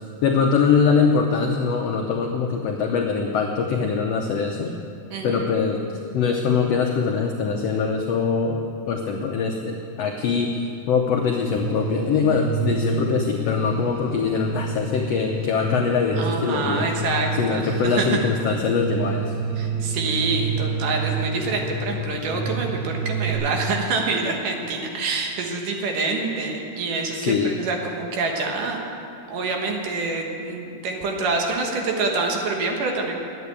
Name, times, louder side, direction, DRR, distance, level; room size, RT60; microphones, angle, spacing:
voice 1, 0.2-4.7 5.2-5.8 6.1-8.6 8.9-10.6 10.9-16.9 17.3-19.3 27.1-27.5, left 5 dB, 85° left, 2 dB, 1.4 m, -22 dB
voice 2, 5.1-5.5 16.1-18.2 19.6-28.8 29.3-33.2, right 3 dB, 75° right, 2 dB, 2.8 m, -26 dB
sound 1, 11.6-23.3, right 4 dB, 55° right, 2.2 m, -28 dB
11.0 x 9.2 x 8.3 m, 2.6 s
omnidirectional pair, 3.9 m